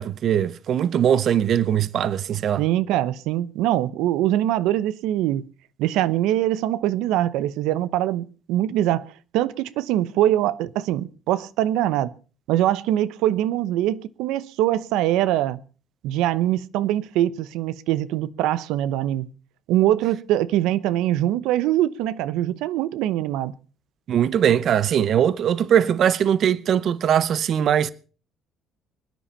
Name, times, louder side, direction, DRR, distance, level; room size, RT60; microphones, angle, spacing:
voice 1, 0.0-2.6 24.1-27.9, right 9 dB, 40° right, 0.7 m, -21 dB
voice 2, 2.6-5.5 5.8-9.1 9.3-12.1 12.5-15.6 16.0-19.3 19.7-23.5, right 13 dB, 85° right, 0.8 m, -23 dB
23.0 x 10.0 x 5.6 m
cardioid pair, 170°, 0 cm